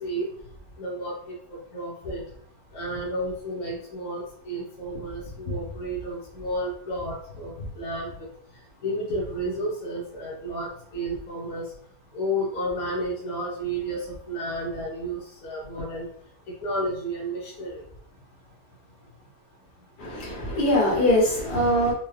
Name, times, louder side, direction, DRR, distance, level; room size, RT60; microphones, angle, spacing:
voice 1, 0.8-2.2 2.7-8.1 8.8-11.6 12.1-16.0 16.6-17.8 21.6-21.7, right 1 dB, 65° left, -4 dB, 1.4 m, -31 dB
voice 2, 20.0-21.9, left 1 dB, 80° left, -3 dB, 2.0 m, -22 dB
4.5 x 2.3 x 3.2 m, 0.62 s
omnidirectional pair, 1.7 m